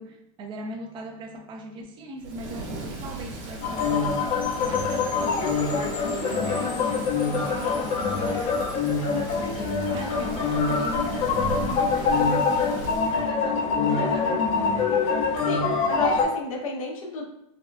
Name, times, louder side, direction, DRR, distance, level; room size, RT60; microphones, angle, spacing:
voice 1, 0.0-15.0, right 1 dB, 30° right, 3 dB, 0.5 m, -38 dB
Thunder / Rain, 2.2-13.3, right 3 dB, 55° right, 1.1 m, -38 dB
sound 1, 3.6-16.2, left 5 dB, 40° left, 0.7 m, -25 dB
Percussion / Wind chime, 4.4-9.1, left 2 dB, 10° left, 0.8 m, -44 dB
voice 2, 15.4-17.3, left 3 dB, 85° left, -1 dB, 0.9 m, -30 dB
3.5 x 2.3 x 2.5 m, 0.81 s
hypercardioid pair, 125°, 17 cm